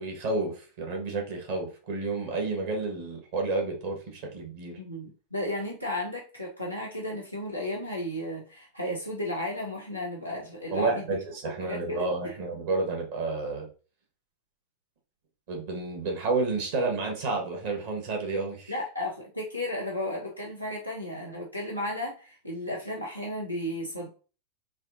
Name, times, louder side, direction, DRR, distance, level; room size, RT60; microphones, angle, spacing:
voice 1, 0.0-4.8 10.7-13.7 15.5-18.7, right 3 dB, 50° right, 1 dB, 1.3 m, -30 dB
voice 2, 4.8-11.0 11.4-12.4 18.7-24.1, left 1 dB, 90° right, -3 dB, 0.8 m, -34 dB
4.2 x 2.7 x 2.5 m, 0.36 s
figure-of-eight pair, 90°, 0 cm